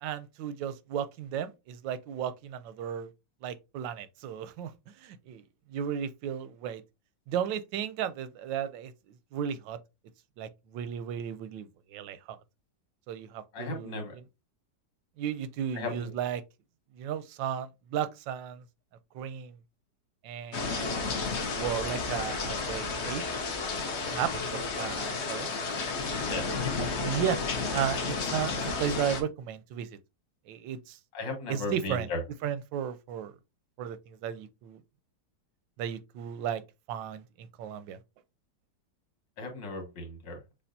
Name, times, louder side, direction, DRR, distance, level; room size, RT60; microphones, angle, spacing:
voice 1, 0.0-3.1 3.4-5.4 5.7-6.8 7.3-8.9 9.3-9.8 10.4-12.4 13.1-14.0 15.2-16.4 16.9-18.6 19.1-19.6 20.2-23.2 24.1-25.5 26.0-27.4 27.7-30.0 30.5-31.0 31.5-32.1 32.4-33.3 33.8-34.8 35.8-36.6 36.9-38.0, right 9 dB, 90° right, 1.3 m, -35 dB
voice 2, 13.5-14.1 15.8-16.1 26.3-26.4 31.1-32.2 39.4-40.4, left 2 dB, 85° left, 2.1 m, -35 dB
sound 1, 20.5-29.2, left 4 dB, 50° left, 0.8 m, -32 dB
6.8 x 2.5 x 2.6 m
omnidirectional pair, 1.9 m